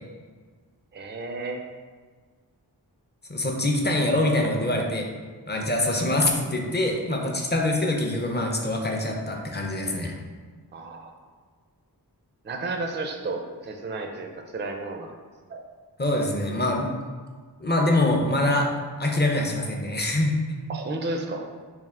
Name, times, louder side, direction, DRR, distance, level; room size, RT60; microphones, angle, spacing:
voice 1, 0.9-1.6 10.7-11.1 12.4-15.1 15.5-15.6 20.7-21.5, right 2 dB, 30° right, 4 dB, 0.4 m, -32 dB
voice 2, 3.3-5.1 5.5-10.2 16.0-16.9 17.6-18.7 19.0-20.3, left 1 dB, 25° left, 1 dB, 0.5 m, -24 dB
3.4 x 2.5 x 3.6 m, 1.5 s
wide cardioid pair, 50°, 41 cm